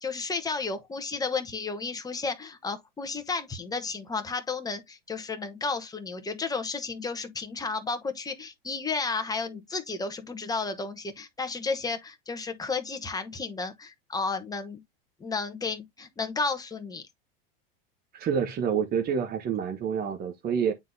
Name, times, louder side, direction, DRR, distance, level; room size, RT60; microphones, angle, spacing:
voice 1, 0.0-14.8 15.2-17.0, left 4 dB, 15° left, 1.0 m, -32 dB
voice 2, 18.1-20.7, right 7 dB, 30° right, 1.0 m, -28 dB
9.3 x 3.8 x 2.7 m
hypercardioid pair, 110°, 29 cm